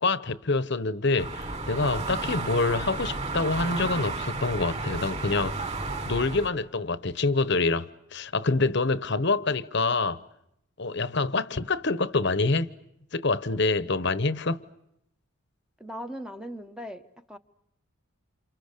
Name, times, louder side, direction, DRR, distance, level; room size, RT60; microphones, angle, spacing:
voice 1, 0.0-5.7 6.0-10.2 10.8-12.7 13.1-14.6, left 3 dB, 55° left, 1.0 m, -26 dB
sound 1, 1.2-6.5, right 3 dB, 30° right, 4.5 m, -32 dB
voice 2, 15.8-17.4, equal, 5° right, 1.0 m, -39 dB
29.5 x 28.0 x 6.7 m
head